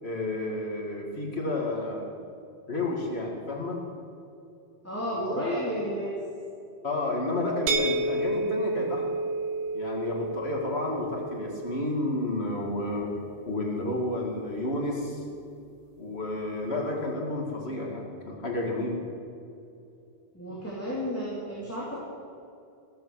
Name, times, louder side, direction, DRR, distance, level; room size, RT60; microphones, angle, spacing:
voice 1, 0.0-2.0 2.7-3.8 5.1-5.6 6.8-9.2 9.7-13.1 13.5-15.2 16.0-19.0, left 2 dB, 70° left, -1 dB, 2.4 m, -31 dB
voice 2, 4.8-6.2 20.3-22.0, equal, 15° left, -6 dB, 3.0 m, -32 dB
sound 1, 7.7-13.4, right 2 dB, 80° right, 1.2 m, -31 dB
15.5 x 14.5 x 6.4 m, 2.6 s
omnidirectional pair, 1.1 m